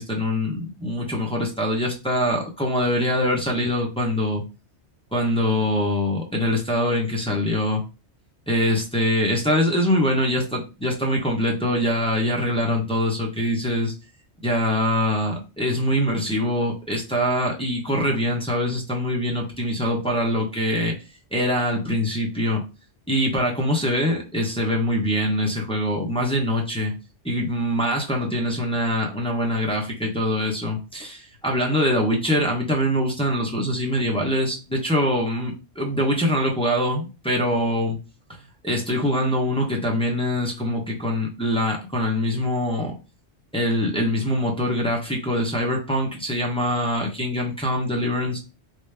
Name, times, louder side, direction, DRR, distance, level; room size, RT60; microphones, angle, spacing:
voice 1, 0.0-4.4 5.1-7.8 8.5-13.9 14.4-20.9 21.3-22.6 23.1-26.9 27.2-38.0 38.6-42.9 43.5-48.4, left 1 dB, 5° left, -1 dB, 0.6 m, -23 dB
3.2 x 2.5 x 3.3 m, 0.30 s
omnidirectional pair, 1.2 m